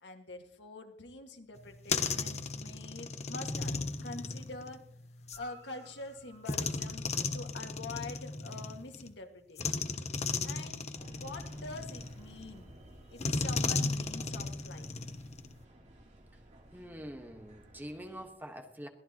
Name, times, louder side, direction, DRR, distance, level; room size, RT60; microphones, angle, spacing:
voice 1, 0.0-4.8 5.4-9.9 10.4-12.7 13.1-15.1, left 2 dB, 75° left, 4 dB, 1.9 m, -46 dB
sound 1, 1.6-5.4 6.5-9.1 9.6-12.5 13.2-15.6, left 4 dB, 40° left, 1.0 m, -35 dB
Guitar, 5.2-7.8 11.7-11.8, right 5 dB, 80° right, 6.8 m, -60 dB
sound 2, 10.9-18.3, right 1 dB, 40° right, 3.1 m, -55 dB
voice 2, 16.7-18.9, equal, 10° right, 4 dB, 1.4 m, -45 dB
22.5 x 16.5 x 3.0 m, 0.70 s
head